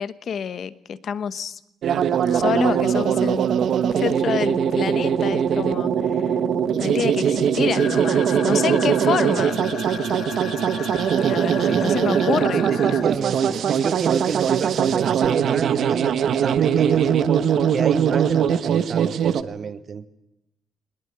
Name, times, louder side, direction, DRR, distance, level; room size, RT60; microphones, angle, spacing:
voice 1, 0.0-1.6 2.3-3.4 4.0-6.4 6.8-9.6 11.3-13.0, left 7 dB, 45° left, 14 dB, 1.1 m, -27 dB
sound 1, 1.8-19.4, right 8 dB, 55° right, 1.2 m, -21 dB
sound 2, 7.7-13.0, left 9 dB, 65° left, 2.2 m, -35 dB
voice 2, 11.6-12.0 12.6-17.1 17.7-20.1, right 6 dB, 35° right, 11 dB, 1.1 m, -29 dB
22.5 x 20.5 x 9.7 m, 0.83 s
cardioid pair, 170°, 0 cm